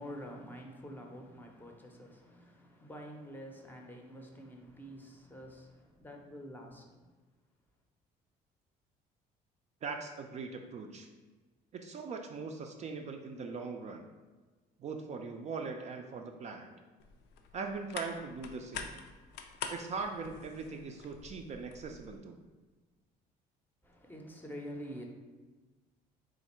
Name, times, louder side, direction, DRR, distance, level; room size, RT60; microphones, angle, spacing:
voice 1, 0.0-6.8 23.8-25.1, equal, 10° left, 1 dB, 0.6 m, -47 dB
voice 2, 9.8-11.1 11.7-14.0 14.8-16.7 17.5-18.9 19.7-22.4, right 4 dB, 40° right, 4 dB, 0.4 m, -40 dB
sound 1, 17.0-22.2, left 6 dB, 80° left, 0.4 m, -46 dB
3.6 x 2.5 x 4.2 m, 1.3 s
cardioid pair, 110°, 17 cm